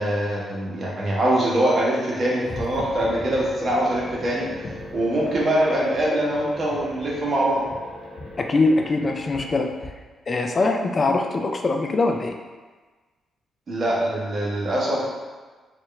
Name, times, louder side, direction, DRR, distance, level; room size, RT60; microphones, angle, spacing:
voice 1, 0.0-4.5 4.9-7.6 13.7-15.1, right 1 dB, 50° right, -5 dB, 1.2 m, -23 dB
sound 1, 2.4-9.9, left 2 dB, 55° left, 0.9 m, -39 dB
voice 2, 8.4-9.7 10.3-12.4, left 3 dB, 40° left, 3 dB, 0.4 m, -22 dB
4.5 x 2.5 x 3.2 m, 1.3 s
cardioid pair, 70°, 0 cm